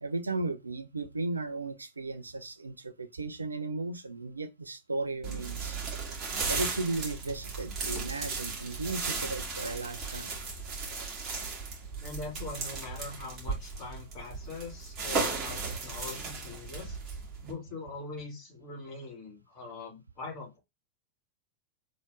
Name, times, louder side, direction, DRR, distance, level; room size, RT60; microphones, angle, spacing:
voice 1, 0.0-5.8 6.5-10.4, right 3 dB, 80° right, 0.5 m, -35 dB
sound 1, 5.2-17.5, right 4 dB, 30° right, 1.9 m, -36 dB
voice 2, 12.0-17.0 17.4-20.6, left 3 dB, 35° left, 2.8 m, -42 dB
4.7 x 3.5 x 2.5 m
figure-of-eight pair, 90°, 0 cm